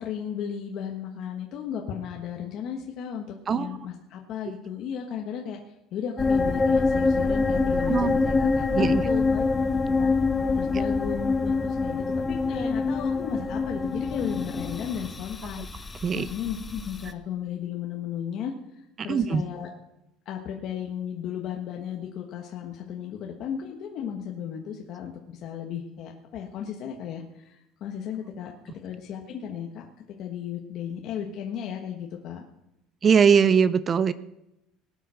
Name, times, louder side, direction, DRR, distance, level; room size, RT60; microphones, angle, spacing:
voice 1, 0.0-5.6 5.9-9.4 10.0-10.1 10.5-19.7 20.2-29.9 30.2-32.4, left 8 dB, 45° left, 1 dB, 1.4 m, -35 dB
voice 2, 3.5-3.8 7.9-8.1 8.7-9.0 16.0-16.3 19.1-19.4 33.0-34.1, right 6 dB, 20° right, 16 dB, 0.5 m, -21 dB
sound 1, 6.2-17.1, left 4 dB, 10° left, 0.7 m, -25 dB
19.0 x 9.1 x 6.3 m, 0.86 s
cardioid pair, 175°, 0 cm